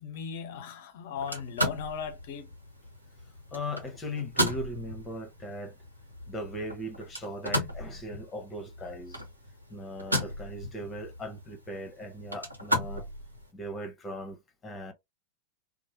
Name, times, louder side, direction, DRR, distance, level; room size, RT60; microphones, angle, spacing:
voice 1, 0.0-2.5, left 6 dB, 55° left, 0.7 m, -37 dB
sound 1, 1.2-13.5, equal, 85° right, 0.8 m, -35 dB
voice 2, 3.5-5.8 6.3-9.2 9.7-13.1 13.5-14.4 14.6-14.9, equal, 15° left, 1.0 m, -38 dB
3.0 x 2.1 x 2.8 m
figure-of-eight pair, 90°, 0 cm